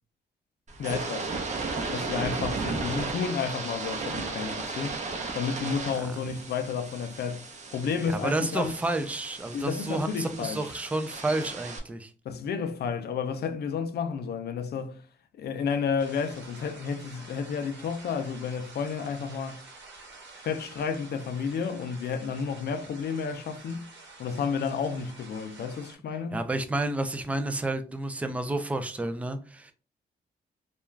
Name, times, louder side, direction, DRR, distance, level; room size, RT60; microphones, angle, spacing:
sound 1, 0.7-11.8, right 3 dB, 40° right, 0.6 m, -35 dB
voice 1, 0.8-1.3 1.9-5.0 5.3-8.8 9.5-10.7 12.2-15.0 15.3-19.6 20.4-23.8 24.2-26.4, left 6 dB, 60° left, 0.4 m, -31 dB
voice 2, 8.1-12.1 26.3-29.7, right 2 dB, 10° right, 0.3 m, -30 dB
sound 2, 16.0-26.0, right 3 dB, 80° right, 1.0 m, -49 dB
2.3 x 2.3 x 3.1 m
cardioid pair, 120°, 18 cm